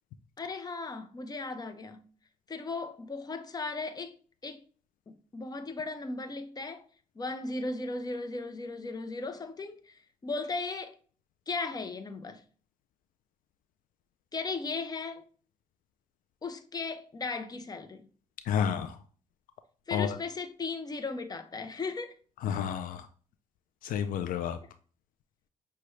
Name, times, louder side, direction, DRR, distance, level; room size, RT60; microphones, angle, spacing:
voice 1, 0.4-2.1 2.5-4.2 4.4-4.6 5.3-6.8 7.2-10.9 11.5-12.4 14.3-15.3 16.4-18.1 19.9-22.1, left 3 dB, 30° left, 0.7 m, -36 dB
voice 2, 18.4-19.0 19.9-20.2 22.4-23.1 23.8-24.6, left 8 dB, 75° left, 0.4 m, -30 dB
6.0 x 2.2 x 3.1 m
supercardioid pair, 65°, 14 cm